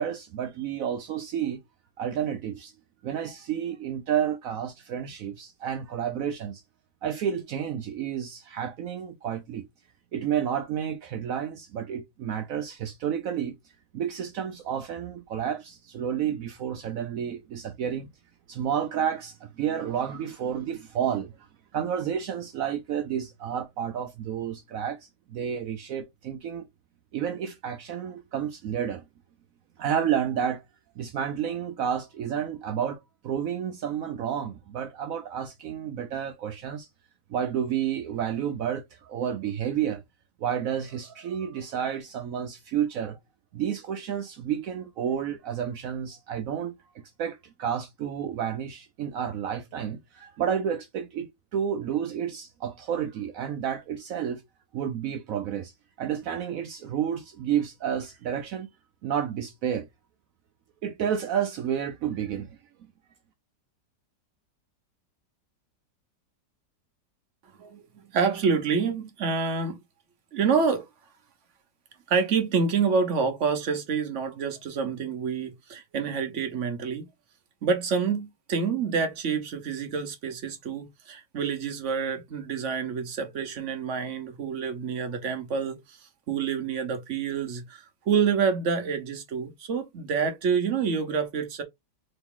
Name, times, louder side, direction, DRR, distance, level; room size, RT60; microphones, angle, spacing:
voice 1, 0.0-1.6 2.0-2.7 3.0-6.6 7.0-9.7 10.1-13.5 13.9-18.1 18.5-21.4 21.7-26.7 27.1-29.1 29.8-30.6 31.0-36.9 37.3-40.0 40.4-43.2 43.5-54.4 54.7-55.7 56.0-58.7 59.0-59.9 60.8-62.5, right 9 dB, 70° right, 0.8 m, -30 dB
voice 2, 68.1-69.8 70.3-70.9 72.1-77.1 77.6-86.0 86.3-91.6, right 5 dB, 55° right, 1.0 m, -27 dB
3.9 x 2.8 x 3.6 m
omnidirectional pair, 1.9 m